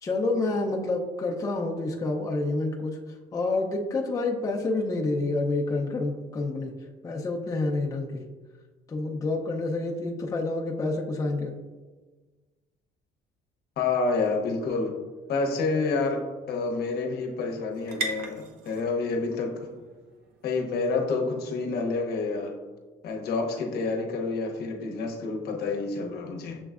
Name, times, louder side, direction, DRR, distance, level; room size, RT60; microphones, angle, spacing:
voice 1, 0.0-3.0 3.3-6.7 7.0-8.3 8.9-11.5, left 2 dB, 20° left, -1 dB, 0.5 m, -28 dB
voice 2, 13.8-14.9 15.3-16.2 16.5-19.7 20.4-22.5 23.0-26.6, left 3 dB, 70° left, 2 dB, 0.8 m, -28 dB
sound 1, 14.6-22.2, right 3 dB, 70° right, 0.5 m, -42 dB
6.8 x 3.1 x 2.4 m, 1.3 s
cardioid pair, 110°, 17 cm